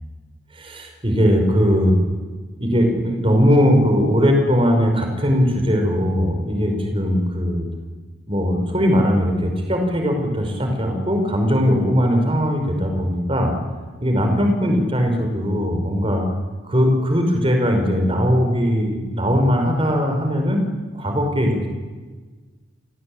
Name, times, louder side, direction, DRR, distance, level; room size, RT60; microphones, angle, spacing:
voice 1, 0.5-2.0 2.6-7.7 8.3-13.5 14.0-16.3 16.6-20.6 20.9-21.7, equal, 25° right, 4 dB, 5.2 m, -19 dB
29.5 x 19.0 x 8.8 m, 1.4 s
head